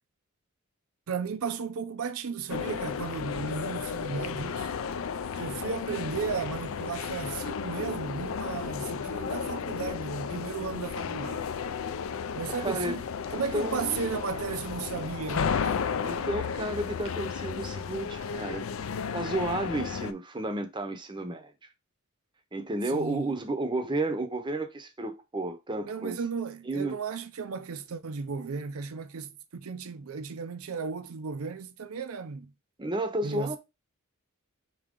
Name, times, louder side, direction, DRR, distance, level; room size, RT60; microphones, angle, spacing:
voice 1, 1.1-4.7 5.3-11.5 12.4-13.0 13.3-15.8 16.1-16.3 22.9-23.4 25.8-32.5 33.2-33.6, right 5 dB, 75° right, 0.5 m, -35 dB
sound 1, 2.5-20.1, left 6 dB, 65° left, 0.4 m, -33 dB
voice 2, 12.6-13.0 13.5-14.0 16.0-18.6 19.1-21.5 22.5-26.2 26.6-27.0 32.8-33.6, right 1 dB, 20° right, 0.7 m, -32 dB
5.0 x 2.8 x 3.7 m
head